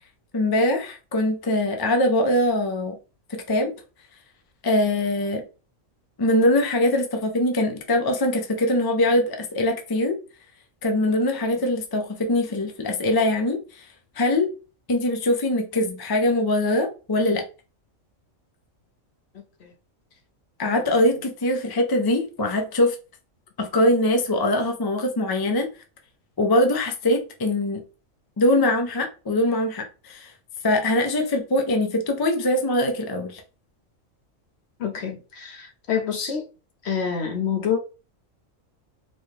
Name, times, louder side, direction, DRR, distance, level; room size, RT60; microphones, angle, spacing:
voice 1, 0.3-3.0 3.3-3.7 4.6-5.4 6.2-10.2 10.8-13.8 14.2-14.5 14.9-17.4 20.6-22.9 23.6-25.7 26.4-27.8 28.4-30.3 30.6-33.4, left 1 dB, 40° left, 0.3 m, -22 dB
voice 2, 34.8-36.4 36.8-37.8, left 7 dB, 55° left, 1.0 m, -27 dB
4.3 x 2.2 x 3.2 m
omnidirectional pair, 1.4 m